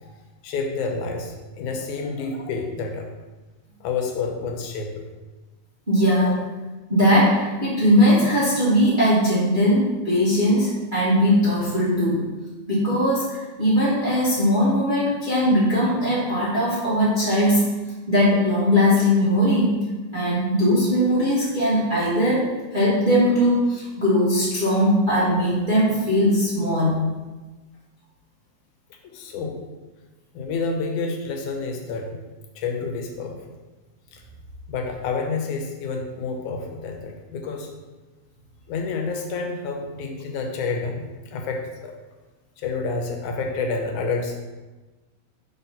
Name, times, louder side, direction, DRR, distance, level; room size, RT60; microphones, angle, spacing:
voice 1, 0.4-3.1 3.8-5.1 6.3-6.4 24.7-24.8 29.0-29.5 30.3-32.2 32.6-33.6 34.1-34.2 34.7-37.7 38.7-41.9 42.6-44.4, left 4 dB, 85° left, 3 dB, 2.2 m, -29 dB
voice 2, 5.9-6.3 6.9-12.2 12.7-17.7 18.1-19.8 20.1-27.1, equal, 25° right, -9 dB, 1.2 m, -20 dB
4.8 x 4.0 x 5.5 m, 1.2 s
omnidirectional pair, 3.4 m